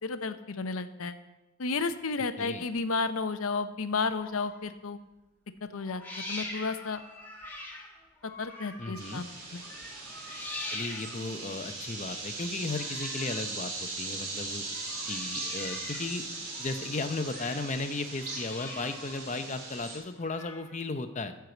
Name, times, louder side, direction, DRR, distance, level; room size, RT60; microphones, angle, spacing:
voice 1, 0.0-1.2 1.6-5.0 5.6-6.0 6.3-7.0 8.2-9.6, left 4 dB, 75° left, 11 dB, 0.6 m, -32 dB
sound 1, 4.0-4.8 5.8-9.3 9.6-11.4 12.6-13.6 14.6-16.2 16.5-17.8 18.1-19.2 20.2-20.8, left 2 dB, 10° left, 1.2 m, -43 dB
voice 2, 8.8-9.2 10.7-14.6 15.1-16.2 16.6-21.3, left 3 dB, 30° left, 9 dB, 0.6 m, -35 dB
sound 2, 8.9-20.0, right 3 dB, 45° right, 3.3 m, -39 dB
12.0 x 4.7 x 7.8 m, 1.1 s
head